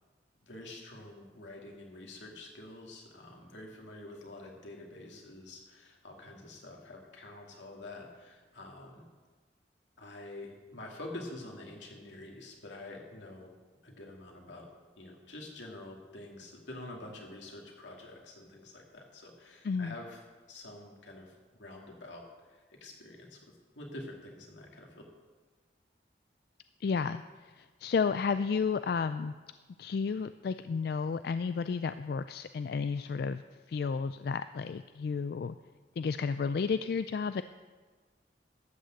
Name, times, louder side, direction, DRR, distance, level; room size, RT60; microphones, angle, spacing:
voice 1, 0.4-9.0 10.0-13.5 13.8-14.7 15.0-20.2 20.5-25.1, left 2 dB, 85° left, 0 dB, 2.6 m, -47 dB
voice 2, 26.8-27.2 27.6-29.3 29.8-33.4 33.7-35.5 36.0-37.4, left 5 dB, 60° left, 11 dB, 0.3 m, -32 dB
13.0 x 6.4 x 8.0 m, 1.4 s
head